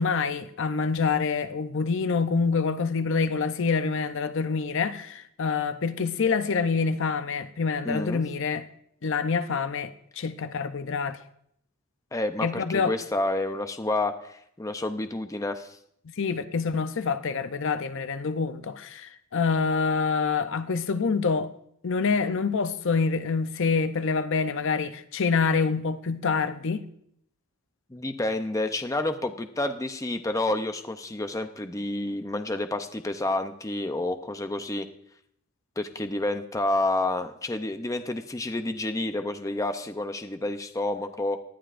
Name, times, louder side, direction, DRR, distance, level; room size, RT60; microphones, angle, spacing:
voice 1, 0.0-8.7 9.0-11.2 12.4-12.9 16.2-21.5 21.8-26.8, left 5 dB, 60° left, 0.6 m, -26 dB
voice 2, 7.8-8.2 12.1-15.8 27.9-34.9 35.8-41.4, left 2 dB, 15° left, 0.6 m, -29 dB
18.5 x 11.5 x 2.5 m
head